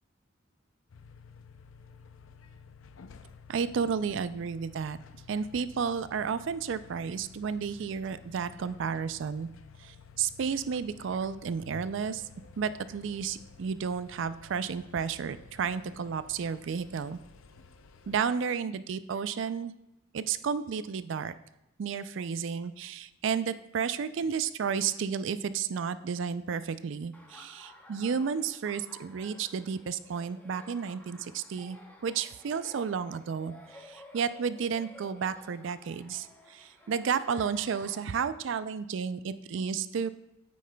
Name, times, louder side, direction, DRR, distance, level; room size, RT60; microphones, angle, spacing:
sound 1, 0.9-18.2, left 5 dB, 80° left, 0.5 m, -53 dB
voice 1, 3.5-5.0 5.3-9.5 9.8-12.2 12.6-17.2 18.1-19.7 20.1-21.3 21.8-33.5 33.9-40.1, right 6 dB, 65° right, 14 dB, 0.4 m, -32 dB
Laughter, 27.1-38.0, left 1 dB, 10° left, 0.8 m, -54 dB
9.4 x 8.3 x 2.2 m, 0.89 s
head